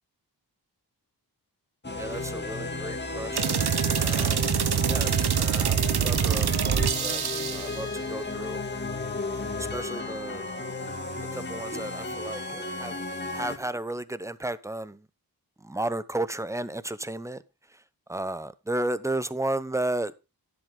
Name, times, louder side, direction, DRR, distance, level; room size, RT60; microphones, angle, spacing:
sound 1, 1.8-13.6, left 2 dB, 25° left, 2.3 m, -34 dB
voice 1, 2.0-3.7 3.9-4.5 4.9-5.8 6.0-7.2 7.5-8.6 9.2-10.4 11.3-12.9 13.3-15.0 15.6-17.4 18.1-20.1, right 1 dB, 10° right, 0.7 m, -33 dB
sound 2, 3.4-7.8, right 8 dB, 75° right, 1.0 m, -25 dB
10.5 x 8.0 x 3.8 m
cardioid pair, 60°, 39 cm